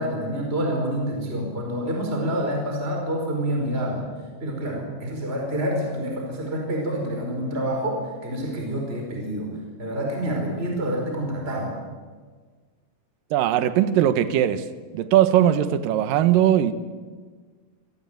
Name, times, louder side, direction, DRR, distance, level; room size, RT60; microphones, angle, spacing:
voice 1, 0.0-4.0 4.4-9.5 9.8-11.8, equal, 15° right, 1 dB, 4.9 m, -27 dB
voice 2, 13.3-14.6 14.9-16.7, right 11 dB, 70° right, 11 dB, 2.7 m, -19 dB
27.0 x 18.0 x 9.3 m, 1.5 s
omnidirectional pair, 4.3 m